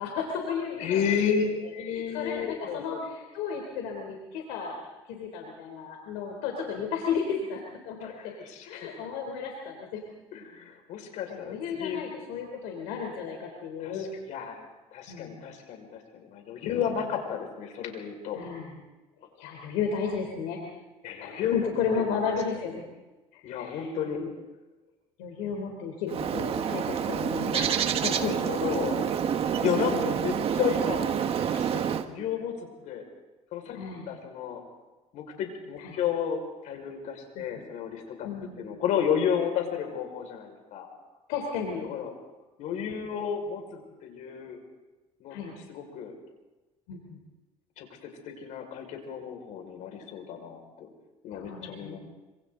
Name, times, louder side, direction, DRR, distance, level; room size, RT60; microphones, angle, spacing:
voice 1, 0.0-1.5 1.9-4.8 5.1-8.3 8.7-10.0 11.3-14.1 15.1-15.5 16.7-16.8 18.3-18.8 19.4-20.6 21.2-22.8 23.3-24.3 25.2-28.4 29.9-30.1 33.7-34.1 35.8-36.0 37.4-37.5 38.2-38.6 41.3-41.8 45.3-45.5 46.9-47.2 51.3-52.0, left 6 dB, 85° left, 1 dB, 3.8 m, -34 dB
voice 2, 0.8-3.0 8.0-9.0 10.3-12.0 13.8-14.7 14.9-18.4 21.0-21.7 22.0-22.2 23.4-24.2 28.2-29.1 29.4-31.1 31.5-32.6 32.9-33.0 33.5-33.8 34.1-34.6 35.1-40.9 41.8-42.1 42.6-44.6 45.2-45.4 45.7-46.1 47.8-50.9 51.2-52.0, left 8 dB, 70° left, 4 dB, 5.6 m, -32 dB
Bird, 26.1-32.0, right 8 dB, 45° right, 1.7 m, -28 dB
26.5 x 26.0 x 4.0 m, 1.1 s
supercardioid pair, 95°, 13 cm